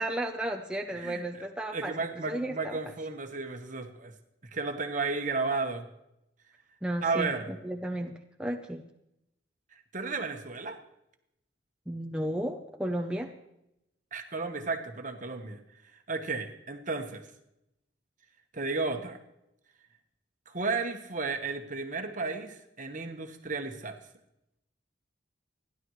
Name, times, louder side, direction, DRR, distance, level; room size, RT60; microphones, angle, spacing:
voice 1, 0.0-1.9 2.3-2.8 6.8-8.8 11.9-13.3, right 1 dB, 5° right, 1 dB, 0.6 m, -33 dB
voice 2, 0.9-1.5 1.7-4.1 4.5-5.9 7.0-7.5 9.7-10.8 14.1-15.6 16.1-17.3 18.5-19.2 20.5-24.0, right 4 dB, 40° right, 6 dB, 1.2 m, -33 dB
29.0 x 11.0 x 3.2 m, 0.86 s
head